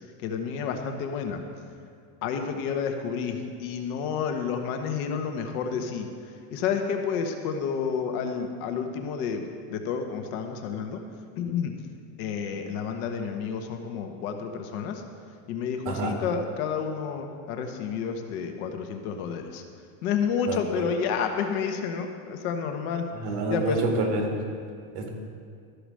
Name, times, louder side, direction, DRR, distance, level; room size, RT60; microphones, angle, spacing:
voice 1, 0.2-1.4 2.2-11.0 11.4-11.7 12.2-15.0 15.5-19.6 20.0-23.8, left 6 dB, 65° left, 5 dB, 1.2 m, -30 dB
voice 2, 23.2-24.2 24.9-25.1, right 3 dB, 55° right, 1 dB, 2.0 m, -27 dB
13.0 x 4.9 x 6.3 m, 2.3 s
supercardioid pair, 150°, 46 cm